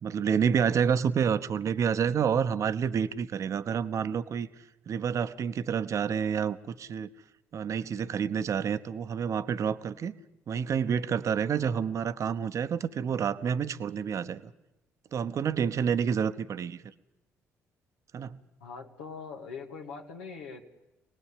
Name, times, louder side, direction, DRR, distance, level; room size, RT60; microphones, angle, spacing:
voice 1, 0.0-4.5 4.9-7.1 7.5-10.2 10.5-14.4 15.1-16.8 18.1-18.4, right 7 dB, 50° right, 12 dB, 1.0 m, -28 dB
voice 2, 18.6-20.6, left 5 dB, 80° left, 1 dB, 2.1 m, -42 dB
26.0 x 19.0 x 8.5 m, 0.96 s
hypercardioid pair, 50°, 7 cm